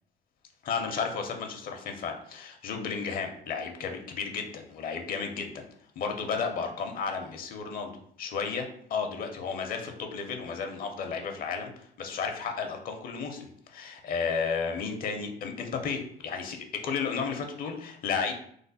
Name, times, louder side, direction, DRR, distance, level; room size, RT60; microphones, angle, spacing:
voice 1, 0.6-5.6 6.0-7.9 8.2-18.3, left 5 dB, 60° left, 4 dB, 0.6 m, -33 dB
3.2 x 2.0 x 4.0 m, 0.65 s
cardioid pair, 110°, 17 cm